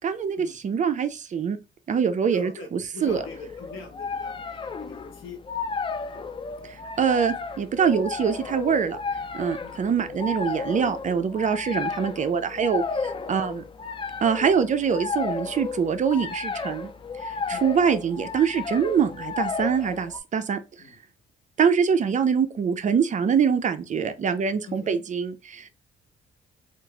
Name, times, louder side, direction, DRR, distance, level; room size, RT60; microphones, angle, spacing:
voice 1, 0.0-1.6 1.9-3.2 6.6-9.0 9.3-13.6 14.2-16.9 17.2-20.6 21.6-25.7, right 6 dB, 40° right, 0.4 m, -24 dB
voice 2, 2.3-5.4 9.6-9.8 17.5-17.6 20.8-21.0 24.7-25.0, left 4 dB, 80° left, 1.2 m, -43 dB
sound 1, 3.1-20.2, left 4 dB, 25° left, 0.4 m, -33 dB
2.9 x 2.4 x 2.3 m
cardioid pair, 90°, 20 cm